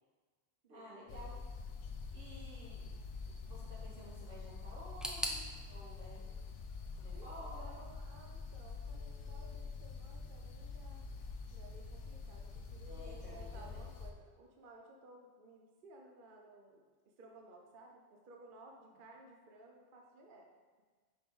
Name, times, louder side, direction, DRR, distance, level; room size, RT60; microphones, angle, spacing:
voice 1, 0.7-1.4 2.1-2.9 3.2-6.3 7.0-7.8 12.9-13.9, equal, 85° right, -8 dB, 2.8 m, -53 dB
Sounds from the Atlantic Rainforest, 1.1-14.1, left 4 dB, 75° left, 1.0 m, -46 dB
sound 1, 5.0-7.9 8.1-8.9 9.2-9.3 10.2-10.3, equal, ahead, 0.4 m, -45 dB
voice 2, 7.6-11.1 11.5-16.8 17.2-20.5, right 2 dB, 50° right, 1 dB, 0.9 m, -57 dB
5.6 x 5.4 x 4.9 m, 1.4 s
omnidirectional pair, 1.3 m